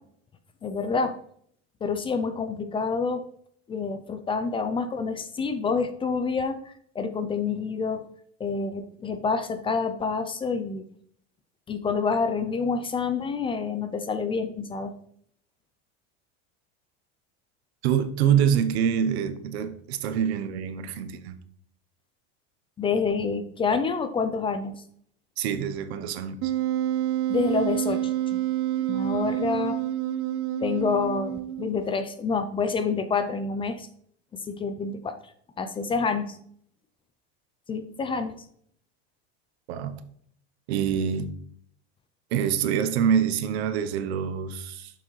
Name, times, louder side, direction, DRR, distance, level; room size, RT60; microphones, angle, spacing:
voice 1, 0.6-1.1 1.8-3.2 3.7-8.0 8.4-10.8 11.7-14.9 22.8-24.7 27.3-28.4 28.8-29.8 30.6-33.9 34.3-35.2 35.6-36.4 37.7-38.3, left 5 dB, 15° left, 0.4 m, -28 dB
voice 2, 17.8-21.4 25.4-26.5 39.7-39.9 40.7-41.3 42.3-44.9, right 8 dB, 85° right, 0.9 m, -25 dB
Wind instrument woodwind instrument, 26.4-31.8, right 12 dB, 45° right, 0.5 m, -28 dB
6.7 x 6.1 x 3.1 m
supercardioid pair, 140°, 31 cm